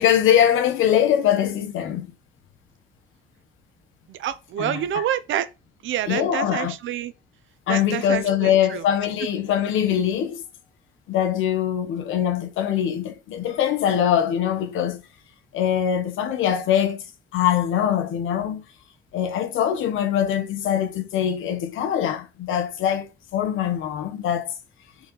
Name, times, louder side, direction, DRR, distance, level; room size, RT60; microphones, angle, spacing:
voice 1, 0.0-2.1 4.6-5.0 6.1-6.7 7.7-10.4 11.1-15.0 15.5-17.0 17.3-18.6 19.1-24.6, left 10 dB, 85° left, 1.3 m, -22 dB
voice 2, 4.1-5.5 5.8-7.1 7.7-8.8, right 11 dB, 75° right, 0.7 m, -27 dB
4.4 x 4.0 x 5.4 m
cardioid pair, 90°, 20 cm